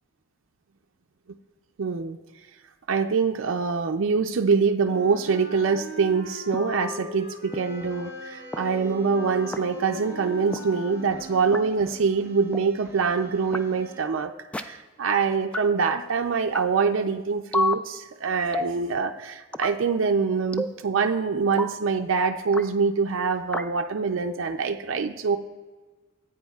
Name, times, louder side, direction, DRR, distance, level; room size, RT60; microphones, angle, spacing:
voice 1, 1.8-2.2 2.9-25.4, right 5 dB, 70° right, 5 dB, 0.4 m, -24 dB
Wind instrument woodwind instrument, 4.8-12.1, left 2 dB, 60° left, 1.3 m, -40 dB
sound 1, 6.5-6.6 7.5-7.6 8.5-8.6 9.5-9.6 10.5-10.6 11.5-11.6 12.5-12.6 13.5-13.6 14.5-14.6 15.5-15.6 16.5-16.6 17.5-17.7 18.5-18.8 19.5-19.8 20.5-20.8 21.5-21.7 22.5-22.7 23.5-23.7, left 2 dB, 5° left, 0.3 m, -28 dB
sound 2, 7.5-14.0, right 1 dB, 15° right, 0.9 m, -48 dB
15.0 x 8.8 x 2.3 m, 1.3 s
head